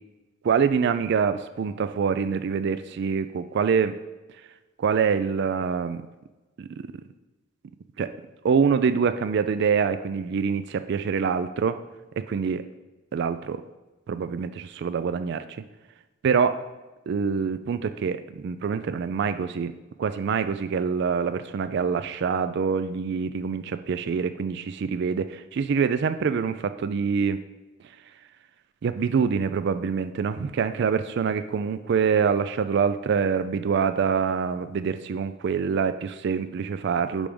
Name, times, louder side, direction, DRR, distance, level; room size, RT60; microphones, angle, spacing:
voice 1, 0.4-3.9 4.8-6.0 6.6-6.7 8.0-8.1 8.4-11.8 12.2-12.6 13.1-13.6 14.1-15.4 16.2-16.6 17.1-19.7 20.0-27.4 28.8-37.3, right 6 dB, 60° right, 11 dB, 0.3 m, -25 dB
10.0 x 3.5 x 5.2 m, 1.1 s
head